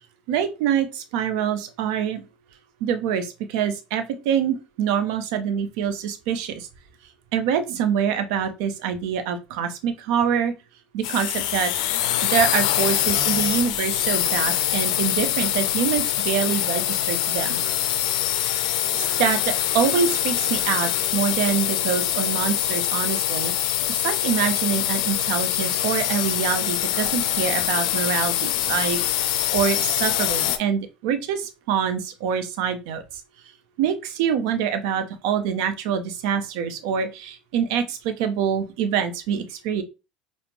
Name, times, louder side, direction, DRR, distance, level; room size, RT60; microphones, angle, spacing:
voice 1, 0.3-2.2 2.8-6.7 7.3-10.5 10.9-11.7 12.2-17.6 19.0-23.8 24.0-29.0 29.5-33.0 33.8-39.8, right 8 dB, 65° right, 9 dB, 0.6 m, -25 dB
sound 1, 11.0-30.6, left 12 dB, 70° left, 0.4 m, -24 dB
4.9 x 2.0 x 3.1 m, 0.28 s
hypercardioid pair, 70°, 4 cm